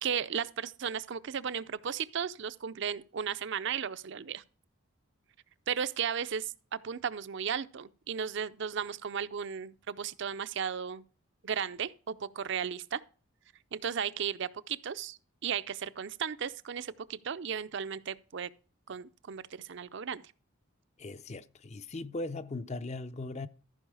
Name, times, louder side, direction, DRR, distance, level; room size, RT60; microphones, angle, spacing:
voice 1, 0.0-4.4 5.7-11.0 11.4-13.0 13.7-18.5 18.9-20.2, right 7 dB, 60° right, 0.5 m, -35 dB
voice 2, 21.0-23.5, left 2 dB, 35° left, 0.5 m, -39 dB
14.0 x 5.4 x 4.8 m
head